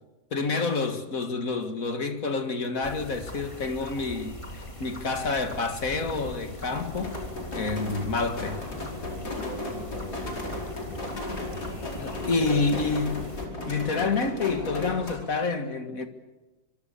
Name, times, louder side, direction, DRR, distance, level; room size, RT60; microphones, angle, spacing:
voice 1, 0.3-7.2 7.5-8.6 9.4-9.5 12.0-13.2 13.7-16.1, left 4 dB, 55° left, 2.2 m, -28 dB
sound 1, 2.8-13.5, left 1 dB, 20° left, 2.3 m, -41 dB
sound 2, 5.9-15.1, left 2 dB, 75° left, 5.5 m, -36 dB
voice 2, 8.9-13.1, right 1 dB, 30° right, 7.3 m, -42 dB
25.5 x 23.5 x 7.0 m
omnidirectional pair, 1.7 m